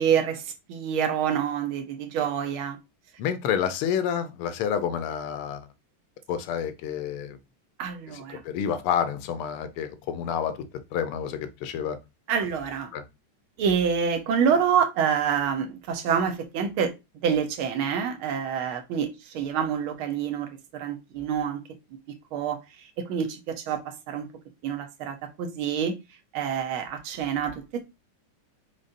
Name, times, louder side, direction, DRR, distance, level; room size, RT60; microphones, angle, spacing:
voice 1, 0.0-2.8 7.8-8.4 12.3-12.9 13.6-16.9 17.2-21.6 22.1-24.3 24.6-25.9 26.3-27.9, right 7 dB, 75° right, 1.6 m, -27 dB
voice 2, 3.2-5.6 6.3-7.4 8.1-10.6 10.9-12.0 12.9-13.0, left 8 dB, 80° left, 1.6 m, -29 dB
5.2 x 3.9 x 2.5 m
omnidirectional pair, 2.4 m